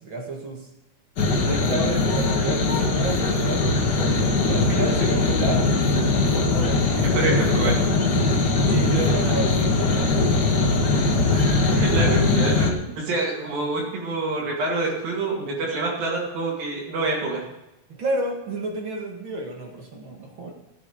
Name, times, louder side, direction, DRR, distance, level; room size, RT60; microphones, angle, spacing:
voice 1, 0.0-0.7 1.4-5.7 6.3-7.7 8.6-10.6 17.9-20.5, right 2 dB, 40° right, 1 dB, 2.1 m, -31 dB
sound 1, 1.2-12.7, left 3 dB, 75° left, 0.9 m, -21 dB
voice 2, 7.0-7.7 9.2-9.3 11.2-12.7 12.9-17.4, right 3 dB, 75° right, -3 dB, 4.0 m, -27 dB
15.5 x 7.7 x 5.0 m, 0.92 s
omnidirectional pair, 4.2 m